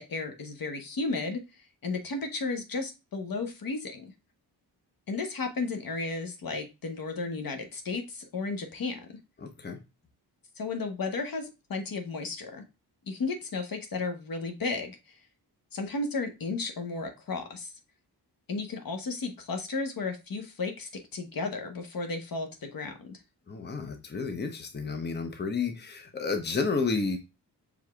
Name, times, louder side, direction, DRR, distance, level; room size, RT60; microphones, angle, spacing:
voice 1, 0.0-1.4 1.8-4.1 5.1-9.2 10.6-12.6 13.1-15.1 15.7-17.7 18.5-23.2, left 3 dB, 55° left, 6 dB, 1.0 m, -34 dB
voice 2, 9.4-9.8 23.5-27.2, left 4 dB, 25° left, 5 dB, 0.8 m, -31 dB
4.8 x 3.6 x 2.3 m, 0.26 s
cardioid pair, 75°, 41 cm